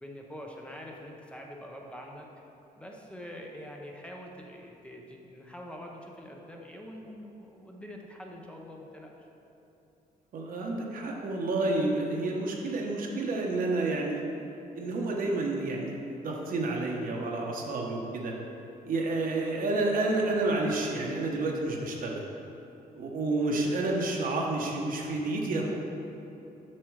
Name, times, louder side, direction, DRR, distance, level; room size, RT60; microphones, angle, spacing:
voice 1, 0.0-2.3 2.8-9.1, equal, 5° left, 0 dB, 0.8 m, -45 dB
voice 2, 10.3-14.3 14.7-18.3 18.8-22.2 22.9-25.7, right 2 dB, 65° right, -1 dB, 1.2 m, -30 dB
7.5 x 6.1 x 4.8 m, 3.0 s
cardioid pair, 120°, 16 cm